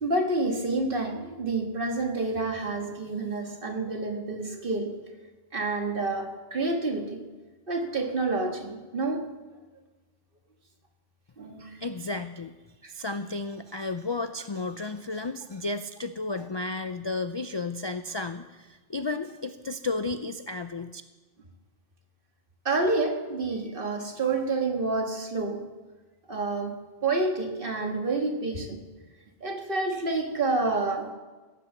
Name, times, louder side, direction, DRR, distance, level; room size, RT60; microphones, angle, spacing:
voice 1, 0.0-4.9 5.5-7.2 7.7-9.3 11.4-11.8 22.7-25.6 26.3-26.8 27.0-28.8 29.4-31.1, right 3 dB, 55° right, 3 dB, 1.8 m, -28 dB
voice 2, 11.8-12.5 12.9-21.0, left 3 dB, 40° left, 10 dB, 0.4 m, -33 dB
16.0 x 8.5 x 7.1 m, 1.2 s
omnidirectional pair, 1.1 m